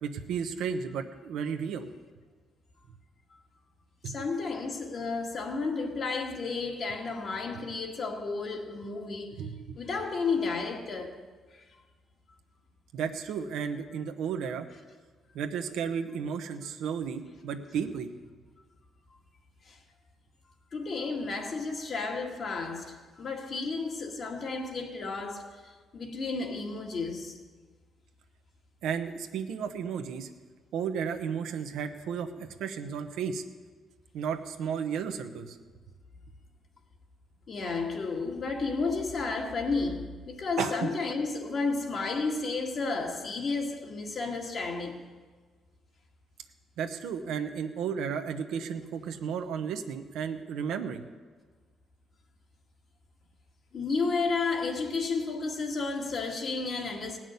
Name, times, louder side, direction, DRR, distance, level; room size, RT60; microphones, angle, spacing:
voice 1, 0.0-1.9 4.0-4.3 9.4-9.5 12.9-14.7 15.3-18.1 28.8-30.3 30.7-33.4 34.1-35.6 40.6-40.9 46.8-51.0, right 7 dB, 85° right, 1.0 m, -33 dB
voice 2, 4.1-9.4 9.8-11.2 19.7-19.8 20.7-25.6 25.9-27.4 37.5-45.1 53.7-57.2, left 4 dB, 50° left, 2.0 m, -32 dB
17.0 x 6.1 x 9.4 m
cardioid pair, 90°, 0 cm